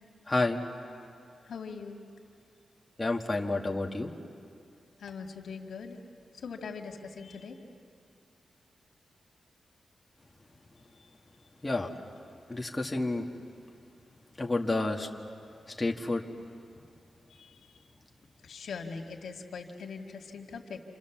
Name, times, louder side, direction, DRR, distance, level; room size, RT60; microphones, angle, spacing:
voice 1, 0.3-0.6 3.0-4.1 11.6-12.0 12.5-13.3 14.4-15.1 15.7-16.2, left 2 dB, 15° left, 1 dB, 1.6 m, -30 dB
voice 2, 1.5-2.0 5.0-6.0 6.4-7.5 17.4-17.5 18.4-20.8, left 5 dB, 85° left, 2 dB, 2.1 m, -41 dB
29.0 x 27.0 x 7.3 m, 2.5 s
wide cardioid pair, 150°, 0 cm